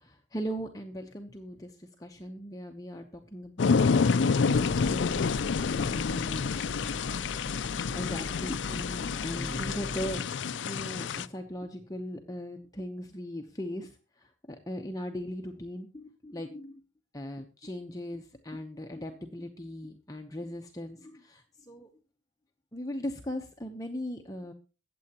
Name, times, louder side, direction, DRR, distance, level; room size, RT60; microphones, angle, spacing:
voice 1, 0.0-3.9 4.2-5.4 5.7-6.6 7.9-10.3 10.6-16.8 17.1-21.9 22.7-24.5, equal, 20° left, 4 dB, 0.8 m, -39 dB
sound 1, 3.6-11.2, left 5 dB, 80° left, 0.4 m, -28 dB
sound 2, 4.5-10.2, equal, 20° right, 1.7 m, -41 dB
sound 3, 9.3-11.9, equal, 5° left, 5.0 m, -46 dB
22.0 x 7.8 x 2.9 m, 0.35 s
head